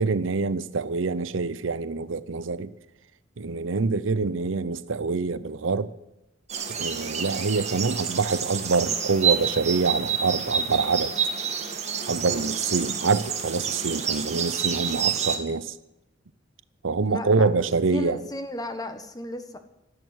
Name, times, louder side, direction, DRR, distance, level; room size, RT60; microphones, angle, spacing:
voice 1, 0.0-2.7 3.4-5.9 6.7-11.1 12.1-15.7 16.8-18.2, right 4 dB, 85° right, 0.7 m, -25 dB
sound 1, 6.5-15.4, right 7 dB, 35° right, 1.8 m, -28 dB
voice 2, 17.0-17.5 17.9-19.6, left 1 dB, 20° left, 1.4 m, -34 dB
13.0 x 11.0 x 9.3 m
head